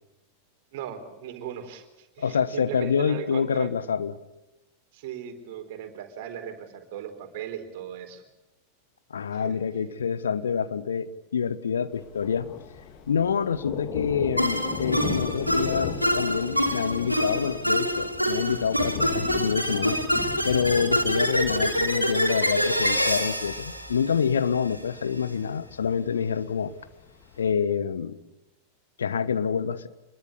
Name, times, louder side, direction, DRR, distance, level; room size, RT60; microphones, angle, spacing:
voice 1, 0.7-3.7 4.9-8.2 9.3-9.6, right 9 dB, 50° right, 6 dB, 4.1 m, -38 dB
voice 2, 2.2-4.2 9.1-11.1 11.3-12.5 13.1-20.0 20.4-26.7 27.4-28.2 29.0-29.9, left 7 dB, 70° left, 14 dB, 1.4 m, -27 dB
Thunder, 11.9-27.5, left 6 dB, 40° left, 3.1 m, -38 dB
sound 1, 14.4-24.8, equal, 90° right, 3.1 m, -26 dB
26.0 x 22.0 x 8.6 m, 0.94 s
figure-of-eight pair, 90°, 0 cm